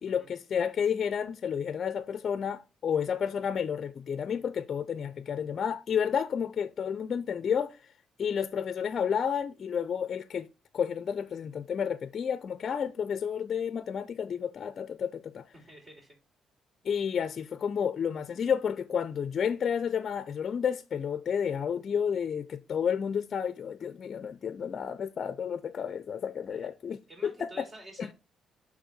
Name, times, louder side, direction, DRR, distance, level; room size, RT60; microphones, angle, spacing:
voice 1, 0.0-7.9 8.2-10.5 10.7-15.5 16.8-27.7 28.0-28.1, left 7 dB, 50° left, 0.5 m, -31 dB
voice 2, 15.5-16.2 26.5-26.7 27.1-28.1, right 1 dB, 35° right, 3.0 m, -49 dB
5.8 x 4.4 x 6.2 m
cardioid pair, 90°, 0 cm